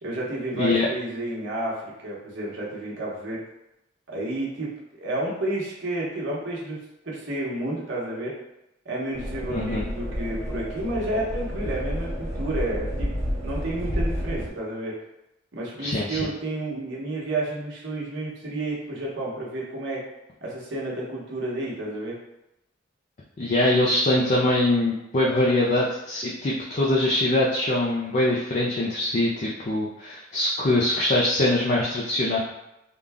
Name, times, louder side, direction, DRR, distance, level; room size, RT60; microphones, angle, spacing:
voice 1, 0.0-3.4 4.1-6.8 7.0-8.3 8.8-13.1 13.4-14.9 15.5-20.0 20.4-22.1, right 1 dB, 60° right, -5 dB, 1.1 m, -31 dB
sound 1, 9.1-14.5, equal, 15° right, 0.6 m, -30 dB
voice 2, 9.5-9.8 15.8-16.2 23.4-32.4, left 1 dB, 35° left, -4 dB, 0.4 m, -23 dB
3.8 x 2.2 x 3.4 m, 0.89 s
head